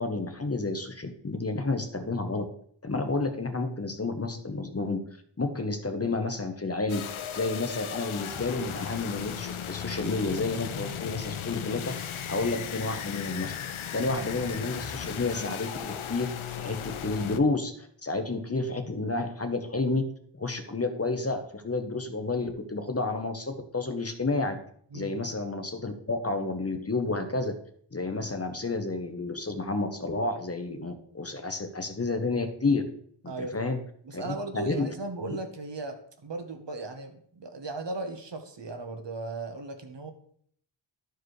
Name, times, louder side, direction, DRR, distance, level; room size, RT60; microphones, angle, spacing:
voice 1, 0.0-2.4 2.8-5.0 5.4-7.1 7.3-11.9 12.3-13.5 13.9-20.1 20.4-24.6 24.9-27.5 27.9-32.8 33.2-33.8 34.1-34.9, left 3 dB, 30° left, 7 dB, 0.9 m, -30 dB
sound 1, 6.9-17.4, left 9 dB, 85° left, 0.6 m, -36 dB
voice 2, 33.3-33.7 34.0-40.1, right 2 dB, 60° right, 6 dB, 1.2 m, -37 dB
12.5 x 4.7 x 3.2 m, 0.62 s
wide cardioid pair, 70°, 48 cm